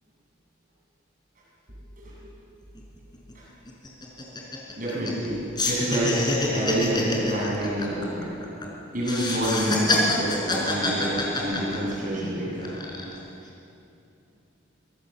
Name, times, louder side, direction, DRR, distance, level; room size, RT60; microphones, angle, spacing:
sound 1, 2.8-2.9 3.1-3.3 3.7-5.3 5.6-8.7 9.0-12.2 12.6-13.2, left 2 dB, 25° left, 4.5 m, -27 dB
voice 1, 4.8-8.3 8.9-12.7, right 1 dB, 45° right, -6 dB, 7.6 m, -28 dB
24.5 x 21.5 x 7.9 m, 2.8 s
head